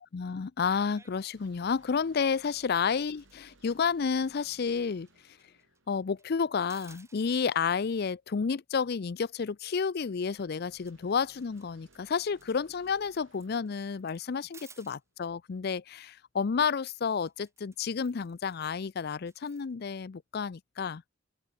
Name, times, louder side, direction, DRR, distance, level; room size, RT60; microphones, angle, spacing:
voice 1, 0.0-5.1 5.9-21.0, left 6 dB, 55° left, 0.5 m, -31 dB
sound 1, 0.9-1.1 1.4-1.9 2.3-2.5 2.8-4.8 5.1-5.2 5.4-6.3 6.6-7.6 10.0-10.1 10.4-15.0 17.1-18.6 19.0-19.7, right 4 dB, 15° right, 8.0 m, -59 dB
sound 2, 1.3-6.8 10.3-15.1, right 2 dB, 80° right, 7.1 m, -63 dB
open air
head